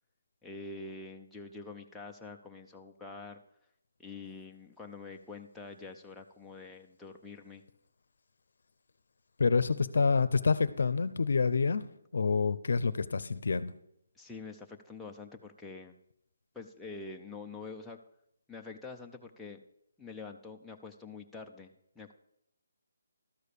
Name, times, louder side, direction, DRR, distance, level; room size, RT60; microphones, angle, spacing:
voice 1, 0.4-3.4 4.0-7.6 14.2-16.0 16.5-18.0 18.5-19.6 20.0-22.1, left 3 dB, 5° left, -1 dB, 0.5 m, -46 dB
voice 2, 9.4-11.8 12.1-13.7, left 4 dB, 65° left, 16 dB, 0.6 m, -27 dB
12.5 x 4.8 x 6.8 m, 0.76 s
hypercardioid pair, 170°, 0 cm